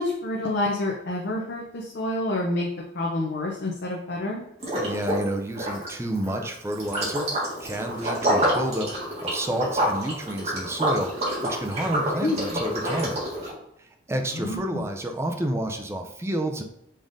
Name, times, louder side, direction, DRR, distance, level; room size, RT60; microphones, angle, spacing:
voice 1, 0.0-4.4 12.2-12.6 14.3-14.8, left 2 dB, 55° left, -1 dB, 0.6 m, -28 dB
Liquid, 4.6-5.3 5.5-13.5, right 1 dB, 35° right, 1.6 m, -27 dB
voice 2, 4.7-7.3 7.6-13.2 13.8-16.6, right 1 dB, 15° right, 4 dB, 0.4 m, -30 dB
5.2 x 3.7 x 2.6 m, 0.79 s
head